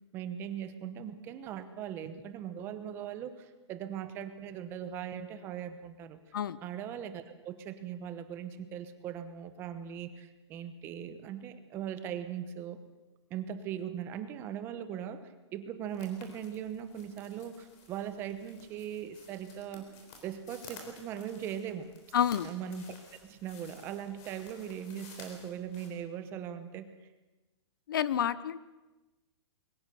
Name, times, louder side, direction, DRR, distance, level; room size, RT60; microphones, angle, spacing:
voice 1, 0.1-6.2 6.6-12.8 13.3-19.9 20.2-21.9 22.4-23.0 23.2-26.9, right 9 dB, 15° right, 11 dB, 1.0 m, -40 dB
sound 1, 15.9-25.9, left 4 dB, 25° left, 3.8 m, -54 dB
voice 2, 22.1-22.5 27.9-28.6, left 9 dB, 45° left, 18 dB, 0.7 m, -29 dB
22.5 x 20.5 x 6.9 m, 1.1 s
hypercardioid pair, 175°, 15 cm